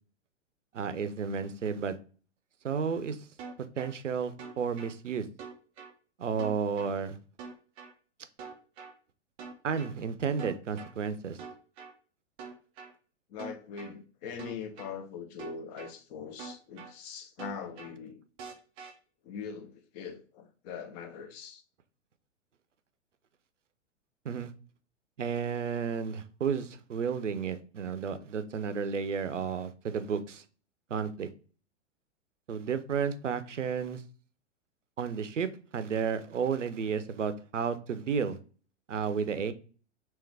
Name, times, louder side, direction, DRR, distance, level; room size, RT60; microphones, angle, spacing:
voice 1, 0.7-2.0 2.6-3.3 3.8-5.3 6.2-7.2 9.6-11.4 24.2-24.5 25.2-30.4 30.9-31.3 32.5-34.0 35.0-38.4 38.9-39.5, right 6 dB, 85° right, 0.5 m, -32 dB
sound 1, 3.4-3.9 4.4-4.9 5.4-5.9 6.4-6.9 7.4-7.9 8.4-8.9 9.4-9.9 10.4-10.9 11.4-11.9 12.4-12.9 13.4-13.9 14.4-14.9 15.4-15.9 16.4-16.9 17.4-17.9 18.4-18.9, right 5 dB, 15° right, 0.3 m, -44 dB
voice 2, 13.3-18.2 19.2-21.6, left 6 dB, 35° left, 0.6 m, -42 dB
3.4 x 3.0 x 3.2 m
figure-of-eight pair, 105°, 36 cm